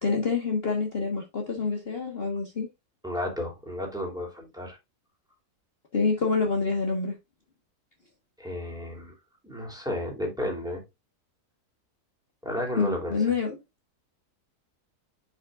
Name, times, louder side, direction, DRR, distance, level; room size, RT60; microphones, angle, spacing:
voice 1, 0.0-2.7 5.9-7.1 12.8-13.6, left 4 dB, 40° left, 1.5 m, -27 dB
voice 2, 3.0-4.8 8.4-9.1 9.4-10.8 12.4-13.2, left 1 dB, ahead, 2.8 m, -32 dB
10.0 x 5.7 x 2.4 m
omnidirectional pair, 1.6 m